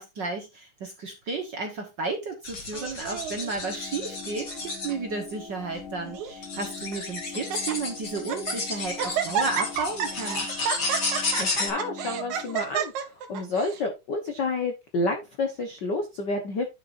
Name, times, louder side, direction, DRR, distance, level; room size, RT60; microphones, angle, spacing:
voice 1, 0.0-4.5 4.8-10.5, right 3 dB, 50° right, 3 dB, 1.5 m, -33 dB
sound 1, 2.4-4.9 5.8-5.9 6.4-11.7, left 3 dB, 35° left, 2.5 m, -32 dB
Laughter, 2.7-3.5 4.2-4.6 4.9-5.0 5.7-6.4 6.9-7.0 7.3-7.8 8.2-8.6 9.0-13.8, right 8 dB, 70° right, 2.5 m, -31 dB
sound 2, 3.6-12.6, left 6 dB, 85° left, 3.0 m, -43 dB
voice 2, 11.4-12.9 13.3-16.7, left 2 dB, 65° left, 5 dB, 1.0 m, -29 dB
10.5 x 6.7 x 2.6 m, 0.24 s
omnidirectional pair, 3.7 m